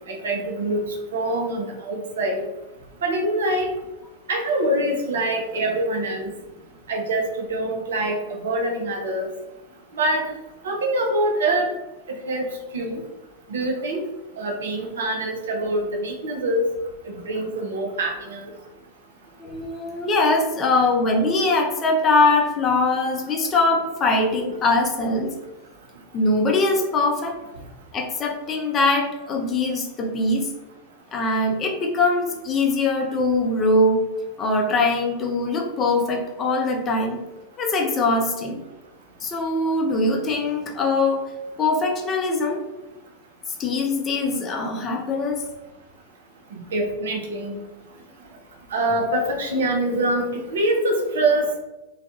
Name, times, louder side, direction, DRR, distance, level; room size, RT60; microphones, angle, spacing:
voice 1, 0.1-2.4 3.0-3.7 4.3-6.3 6.9-9.3 9.9-10.2 10.6-11.7 12.3-13.0 13.5-14.0 14.4-16.6 17.1-18.4 46.5-47.5 48.7-51.6, right 1 dB, 65° right, 2 dB, 0.5 m, -24 dB
voice 2, 19.4-25.3 26.1-27.4 27.9-30.5 31.1-34.0 34.4-37.2 37.6-38.6 39.2-41.3 41.6-42.7 43.6-45.4, left 2 dB, 25° left, 1 dB, 0.4 m, -22 dB
2.3 x 2.2 x 2.7 m, 1.0 s
figure-of-eight pair, 90°, 0 cm